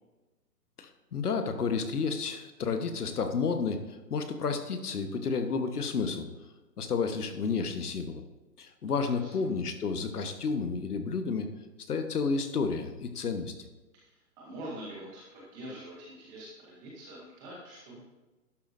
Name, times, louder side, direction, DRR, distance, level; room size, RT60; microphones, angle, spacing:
voice 1, 0.8-6.3 6.8-8.2 8.6-11.5 11.9-13.7, left 5 dB, 65° left, 7 dB, 1.3 m, -31 dB
voice 2, 8.8-9.3 13.9-18.0, right 1 dB, 10° right, -4 dB, 0.8 m, -45 dB
12.0 x 10.5 x 2.6 m, 1.1 s
hypercardioid pair, 150°, 49 cm